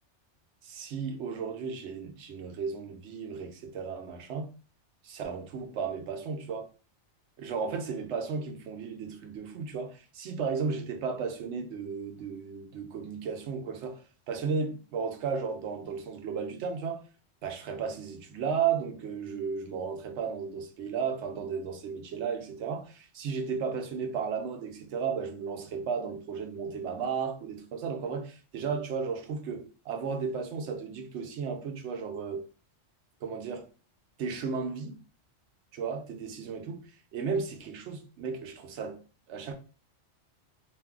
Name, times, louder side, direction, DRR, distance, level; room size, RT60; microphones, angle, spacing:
voice 1, 0.6-4.5 5.0-6.7 7.4-17.0 17.4-32.5 33.2-33.7 34.2-34.9 35.7-36.8 37.1-39.0 39.3-39.5, right 6 dB, 75° right, 0.9 m, -34 dB
2.6 x 2.3 x 3.5 m
omnidirectional pair, 1.2 m